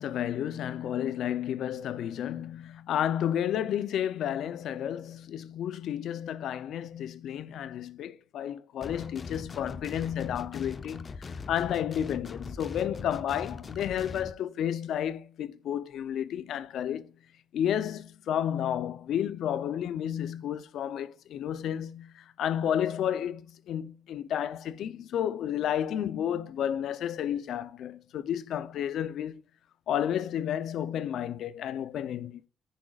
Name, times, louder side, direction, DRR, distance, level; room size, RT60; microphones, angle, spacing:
voice 1, 0.0-17.1 17.5-29.4 29.9-32.5, left 10 dB, 75° left, 0.5 m, -31 dB
sound 1, 8.8-14.3, left 4 dB, 40° left, 0.6 m, -41 dB
10.0 x 9.7 x 2.4 m
cardioid pair, 90°, 0 cm